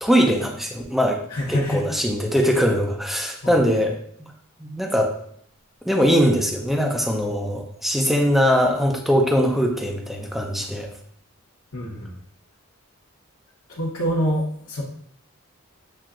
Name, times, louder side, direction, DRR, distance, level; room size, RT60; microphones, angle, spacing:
voice 1, 0.0-1.2 1.5-3.9 4.6-5.1 5.8-10.9, equal, ahead, 1 dB, 0.5 m, -21 dB
voice 2, 1.3-1.8 3.4-3.5 11.7-12.1 13.7-14.4 14.7-14.8, equal, 75° left, -6 dB, 0.9 m, -25 dB
7.4 x 2.8 x 2.4 m, 0.64 s
head